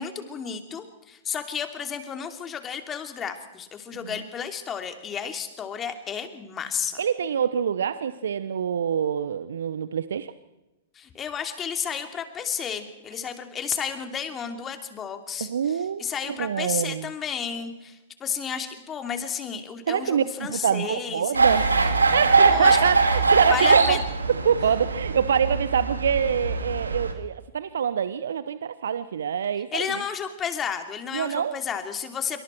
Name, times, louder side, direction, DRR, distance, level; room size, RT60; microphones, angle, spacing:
voice 1, 0.0-7.0 10.9-21.4 22.5-22.8 23.5-24.0 29.7-32.4, left 7 dB, 25° left, 6 dB, 2.8 m, -32 dB
voice 2, 7.0-10.3 15.4-17.1 19.9-24.0 24.4-30.0 31.1-31.6, right 7 dB, 70° right, 14 dB, 0.8 m, -25 dB
sound 1, 21.3-27.1, right 3 dB, 85° right, 2.8 m, -22 dB
26.0 x 24.5 x 4.5 m, 1.0 s
figure-of-eight pair, 105°, 0 cm